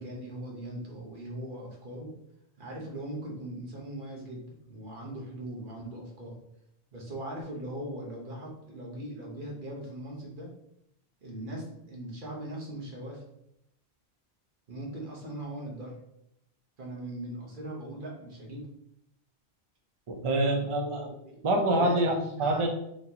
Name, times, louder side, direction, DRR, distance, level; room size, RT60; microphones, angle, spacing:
voice 1, 0.0-2.1 2.6-6.4 6.9-10.5 11.2-13.2 14.7-16.0 16.8-18.7 21.2-21.4 21.7-22.6, right 1 dB, 50° right, -2 dB, 1.1 m, -39 dB
voice 2, 20.1-21.1 21.4-22.1 22.4-22.7, right 1 dB, 35° right, 2 dB, 0.5 m, -26 dB
4.1 x 3.0 x 2.8 m, 0.77 s
omnidirectional pair, 1.1 m